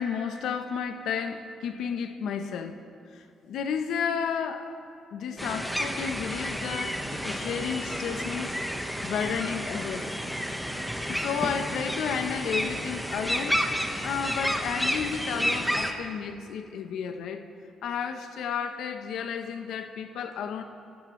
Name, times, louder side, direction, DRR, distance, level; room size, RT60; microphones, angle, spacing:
voice 1, 0.0-2.8 3.1-4.8 5.1-10.1 11.1-13.7 14.0-17.5 17.8-20.6, left 7 dB, 80° left, 0.9 m, -32 dB
sound 1, 5.4-15.9, equal, ahead, 1.3 m, -31 dB
26.5 x 13.5 x 3.2 m
cardioid pair, 90°, 0 cm